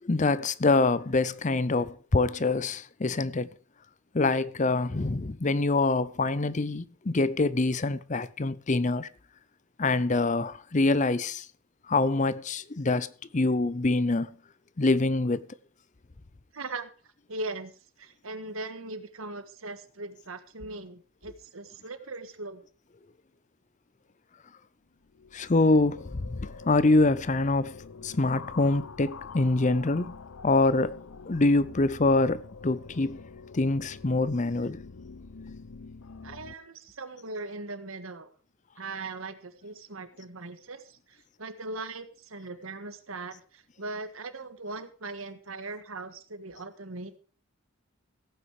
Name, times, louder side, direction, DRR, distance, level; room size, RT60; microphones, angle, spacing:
voice 1, 0.0-3.5 4.1-9.1 9.8-11.5 11.9-14.3 14.8-15.5 25.3-27.7 28.0-30.1 30.4-31.0 31.3-33.2 33.5-34.8, left 2 dB, 35° left, 0.6 m, -25 dB
voice 2, 16.5-16.9 17.3-17.7 18.0-22.6 36.2-38.3 38.8-47.2, right 3 dB, 90° right, 1.6 m, -39 dB
sound 1, 24.9-36.5, left 4 dB, 80° left, 0.8 m, -46 dB
16.0 x 9.1 x 5.0 m
head